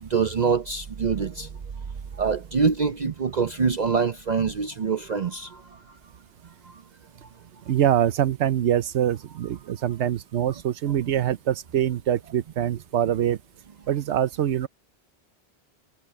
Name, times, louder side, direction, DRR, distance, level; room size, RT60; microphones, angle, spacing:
voice 1, 0.0-1.5 2.2-5.8 6.7-6.8, right 5 dB, 45° right, 0.7 m, -25 dB
voice 2, 7.7-13.4 13.9-14.7, right 10 dB, 85° right, 1.1 m, -24 dB
omnidirectional pair, 1.1 m